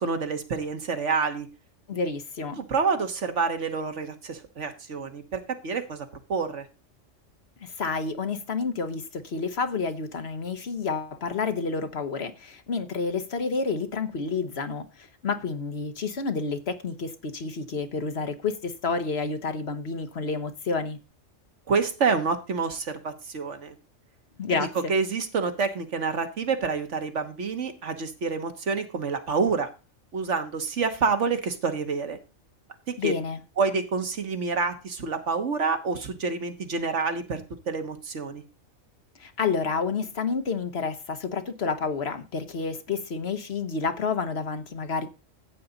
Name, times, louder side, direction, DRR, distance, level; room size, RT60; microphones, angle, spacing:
voice 1, 0.0-1.5 2.6-6.6 21.7-23.7 24.6-29.7 30.1-32.2 33.0-33.1 33.6-38.4, right 5 dB, 70° right, 1.6 m, -28 dB
voice 2, 1.9-2.6 7.6-21.0 24.4-24.9 33.0-33.4 39.2-45.1, left 4 dB, 60° left, 1.4 m, -29 dB
14.0 x 8.5 x 4.0 m
omnidirectional pair, 1.3 m